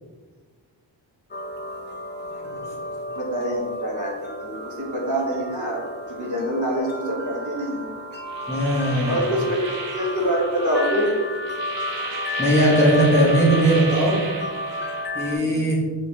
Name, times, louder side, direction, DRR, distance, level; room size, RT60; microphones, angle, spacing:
sound 1, 1.3-15.4, left 1 dB, 25° left, 0.5 m, -33 dB
voice 1, 2.3-7.9 9.1-11.2 15.3-15.7, equal, 40° right, -3 dB, 1.0 m, -26 dB
sound 2, 8.3-15.1, right 4 dB, 80° right, 0.9 m, -35 dB
voice 2, 8.5-9.2 12.4-14.2 15.1-15.8, right 1 dB, 5° left, -5 dB, 0.9 m, -19 dB
4.9 x 3.1 x 2.8 m, 1.4 s
wide cardioid pair, 100°, 44 cm